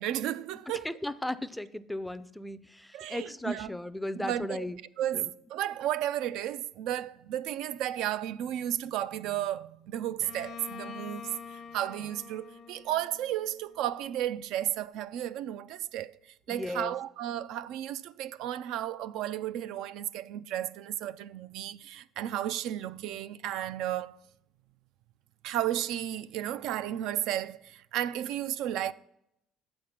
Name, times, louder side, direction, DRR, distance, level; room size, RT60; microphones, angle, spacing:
voice 1, 0.0-0.9 2.9-3.7 4.1-4.7 5.0-16.2 16.5-24.2 25.4-28.9, right 12 dB, 75° right, 0.3 m, -33 dB
voice 2, 0.8-4.8 5.1-5.3 16.5-16.9, left 1 dB, 5° left, 0.4 m, -36 dB
Bowed string instrument, 10.2-13.9, left 6 dB, 55° left, 0.6 m, -46 dB
7.6 x 5.2 x 7.1 m
cardioid pair, 125°, 0 cm